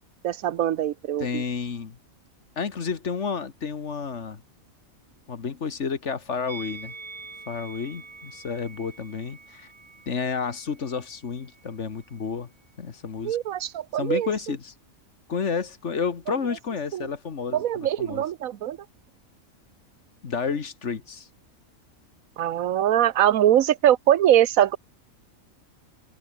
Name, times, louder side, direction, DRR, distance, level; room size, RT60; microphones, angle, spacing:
voice 1, 0.2-1.4 13.2-14.3 16.9-17.1 17.5-18.8 22.4-24.8, right 11 dB, 80° right, 1.2 m, -22 dB
voice 2, 1.2-2.0 2.6-4.4 5.3-6.9 7.5-9.7 10.1-12.5 12.8-13.4 13.9-14.7 15.3-18.2 20.2-21.3, left 5 dB, 55° left, 1.8 m, -31 dB
Musical instrument, 6.5-11.7 12.0-12.2, right 4 dB, 25° right, 0.8 m, -45 dB
open air
omnidirectional pair, 1.4 m